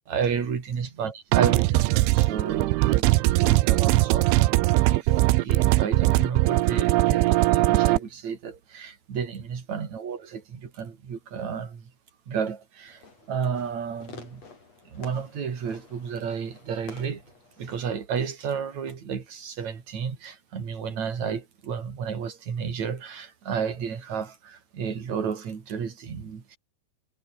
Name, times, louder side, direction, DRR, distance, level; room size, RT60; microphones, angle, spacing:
voice 1, 0.1-11.9 12.3-14.4 14.9-17.2 17.6-26.6, right 7 dB, 40° right, 4.1 m, -32 dB
sound 1, 1.3-8.0, right 19 dB, 90° right, 3.3 m, -20 dB
Fireworks, 12.9-18.0, left 4 dB, 35° left, 6.0 m, -49 dB
omnidirectional pair, 5.4 m